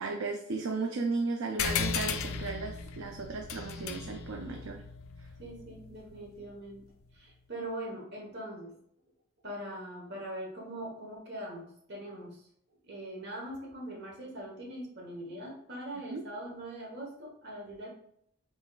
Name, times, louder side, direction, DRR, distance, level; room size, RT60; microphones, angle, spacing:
voice 1, 0.0-4.8 5.2-5.3 16.1-16.2, right 3 dB, 80° right, 2 dB, 0.5 m, -35 dB
sound 1, 1.6-6.5, left 5 dB, 85° left, 0.5 m, -36 dB
voice 2, 5.4-6.9 7.1-8.7 9.4-12.5 12.8-17.9, right 1 dB, 55° right, -2 dB, 1.2 m, -42 dB
4.0 x 3.8 x 2.4 m, 0.69 s
head